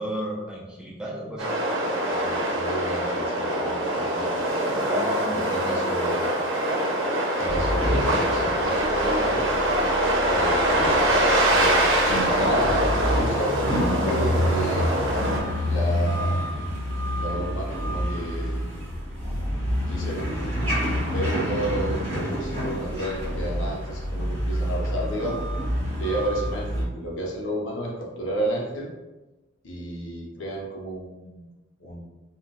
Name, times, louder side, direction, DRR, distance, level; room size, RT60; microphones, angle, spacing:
voice 1, 0.0-1.5 4.7-6.0, right 1 dB, 5° right, -4 dB, 0.4 m, -35 dB
sound 1, 1.4-15.4, right 1 dB, 75° right, 0.6 m, -24 dB
voice 2, 2.1-4.6 5.3-6.3 7.3-9.5 10.2-11.1 11.5-14.9 15.6-16.4 17.0-18.6 19.8-20.5 21.1-25.4 26.0-28.9 29.6-31.4 31.8-32.1, right 1 dB, 75° left, -3 dB, 0.6 m, -32 dB
sound 2, 7.4-26.8, equal, 35° right, 1.2 m, -28 dB
2.2 x 2.1 x 3.8 m, 1.1 s
head